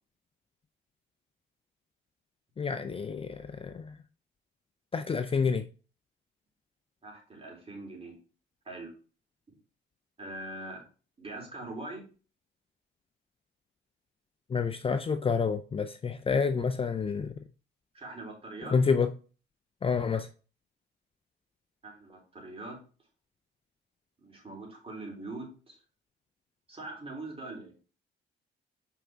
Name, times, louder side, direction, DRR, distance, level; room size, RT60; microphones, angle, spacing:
voice 1, 2.6-4.0 4.9-5.6 14.5-17.3 18.7-19.1 19.8-20.3, left 5 dB, 30° left, 0.5 m, -28 dB
voice 2, 7.0-8.2 8.7-8.9 9.5-9.6 10.2-10.8 11.2-12.0 17.9-18.8 21.8-22.8 24.2-25.8 26.7-27.8, right 2 dB, 30° right, 3.6 m, -42 dB
5.8 x 5.1 x 3.6 m
cardioid pair, 90°, 20 cm